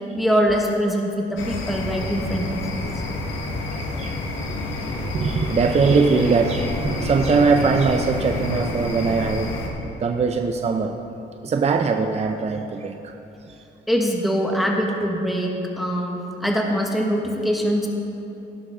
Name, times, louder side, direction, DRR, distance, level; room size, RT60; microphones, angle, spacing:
voice 1, 0.1-2.9 3.5-3.6 13.9-17.9, equal, ahead, 0 dB, 1.1 m, -23 dB
sound 1, 1.4-9.7, left 2 dB, 85° left, 1.3 m, -28 dB
voice 2, 3.6-4.2 5.1-9.6 10.0-11.0 11.4-13.1 13.5-13.6, right 4 dB, 30° right, 5 dB, 0.5 m, -21 dB
17.5 x 6.4 x 3.8 m, 2.9 s
cardioid pair, 90°, 20 cm